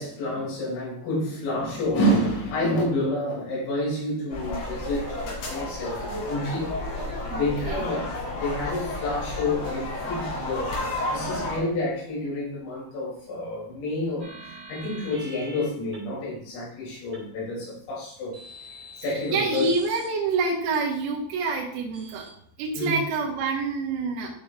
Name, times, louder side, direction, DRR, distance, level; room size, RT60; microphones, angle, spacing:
voice 1, 0.0-6.7 7.4-8.0 8.3-18.4 19.0-19.7 22.8-22.9, left 1 dB, 75° left, -7 dB, 5.8 m, -29 dB
sound 1, 4.3-11.6, left 2 dB, 55° left, 4.0 m, -31 dB
voice 2, 7.3-7.8 19.3-22.2 22.6-24.3, right 3 dB, 75° right, -4 dB, 3.8 m, -27 dB
sound 2, 14.2-15.6 15.9-16.0 17.1-17.2 18.3-20.1 20.7-20.8 21.9-22.3 23.1-23.2, right 1 dB, 50° right, 1.7 m, -44 dB
11.5 x 5.1 x 2.5 m, 0.65 s
omnidirectional pair, 6.0 m